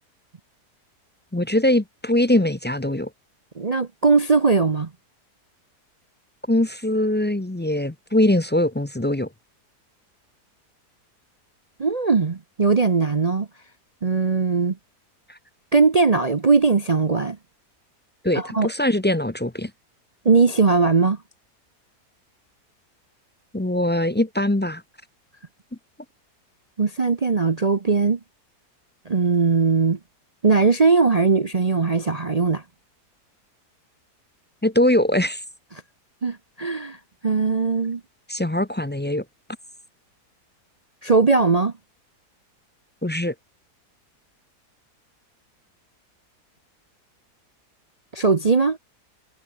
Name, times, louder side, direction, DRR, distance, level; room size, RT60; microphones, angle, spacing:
voice 1, 1.3-3.1 6.5-9.3 15.3-15.4 18.2-19.7 23.5-24.8 34.6-35.4 38.3-39.2 43.0-43.3, left 1 dB, 15° left, 0.3 m, -22 dB
voice 2, 3.6-4.9 11.8-13.5 14.0-14.8 15.7-17.4 18.3-18.7 20.2-21.2 26.8-28.2 29.1-30.0 30.4-32.6 36.2-37.0 37.2-38.0 41.0-41.7 48.1-48.8, right 4 dB, 35° right, 0.6 m, -19 dB
omnidirectional pair, 1.7 m